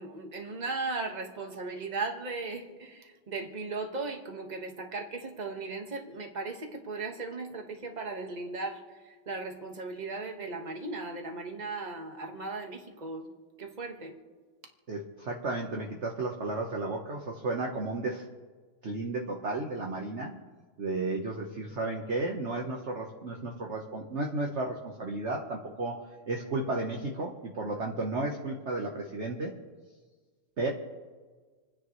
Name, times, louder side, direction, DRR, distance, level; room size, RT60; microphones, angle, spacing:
voice 1, 0.0-13.3 13.6-14.1, right 3 dB, 25° right, 3 dB, 1.4 m, -37 dB
voice 2, 14.9-18.2 18.8-20.3 20.8-26.0 26.3-29.5 30.6-30.7, right 2 dB, 40° right, 0 dB, 1.2 m, -33 dB
28.5 x 10.0 x 3.2 m, 1.4 s
omnidirectional pair, 2.3 m